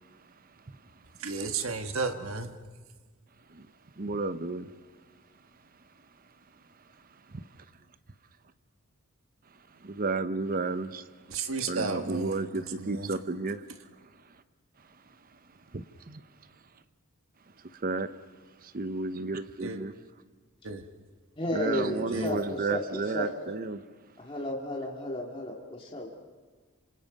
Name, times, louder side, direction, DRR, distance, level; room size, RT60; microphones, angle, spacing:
voice 1, 1.2-2.5 11.3-13.2 19.6-19.8 20.6-20.8 21.9-22.5, right 4 dB, 65° right, 1.5 m, -34 dB
voice 2, 4.0-4.7 9.8-11.1 11.7-13.6 15.7-16.2 17.7-18.1 18.6-19.9 21.5-23.8, right 3 dB, 40° right, 0.8 m, -32 dB
voice 3, 21.4-23.3 24.2-26.1, left 1 dB, 25° left, 2.4 m, -33 dB
27.5 x 26.0 x 5.3 m
head